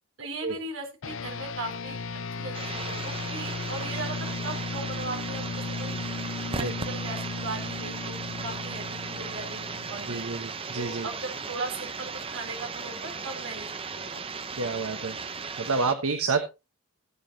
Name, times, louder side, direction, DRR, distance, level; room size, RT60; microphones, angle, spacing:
voice 1, 0.2-2.0 2.4-6.0 6.6-8.2 8.4-10.3 10.7-13.7 14.0-14.5, right 2 dB, 60° right, 3 dB, 3.9 m, -38 dB
sound 1, 1.0-10.7, left 4 dB, 60° left, 0.6 m, -36 dB
sound 2, 2.5-15.9, right 5 dB, 25° right, 0.8 m, -36 dB
voice 2, 10.1-11.1 14.5-15.2 15.6-16.5, right 4 dB, 80° right, 7 dB, 1.2 m, -29 dB
18.0 x 7.7 x 2.8 m, 0.27 s
head